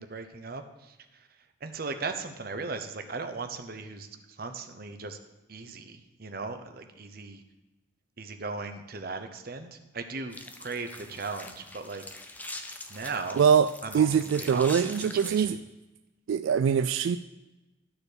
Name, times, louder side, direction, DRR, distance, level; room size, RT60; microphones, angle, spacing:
voice 1, 0.0-5.2 5.5-7.4 8.2-12.0 12.9-13.4 13.8-15.5, right 4 dB, 50° right, 7 dB, 0.8 m, -38 dB
sound 1, 10.3-15.4, left 2 dB, 10° left, 0.5 m, -43 dB
voice 2, 13.4-13.7 13.9-15.6 16.3-17.2, right 7 dB, 80° right, 10 dB, 0.3 m, -23 dB
12.5 x 4.3 x 6.6 m, 1.1 s
head